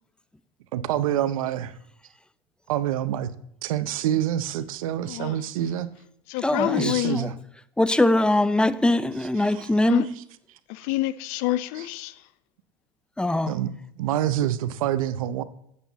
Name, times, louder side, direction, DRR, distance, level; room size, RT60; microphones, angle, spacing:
voice 1, 0.7-1.7 2.7-3.3 3.6-5.9 6.6-7.3 9.5-9.7 13.5-15.4, right 11 dB, 80° right, 0.7 m, -27 dB
voice 2, 5.0-5.4 6.3-7.2 9.8-10.1 10.7-12.2, left 16 dB, 60° left, 0.6 m, -27 dB
voice 3, 6.4-7.3 7.8-10.1 13.2-13.5, left 1 dB, 5° left, 0.4 m, -22 dB
8.9 x 8.3 x 4.0 m
hypercardioid pair, 95°, 17 cm